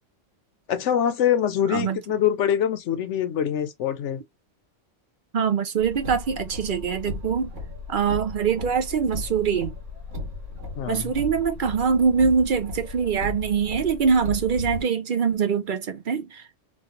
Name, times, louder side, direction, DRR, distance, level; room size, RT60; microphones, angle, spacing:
voice 1, 0.7-4.2 10.8-11.1, left 9 dB, 75° left, 1.0 m, -24 dB
voice 2, 5.3-7.5 7.9-9.7 10.9-16.6, right 6 dB, 55° right, 0.6 m, -23 dB
Car, 5.8-14.8, left 3 dB, 80° right, 1.7 m, -36 dB
3.1 x 2.4 x 2.8 m
omnidirectional pair, 1.3 m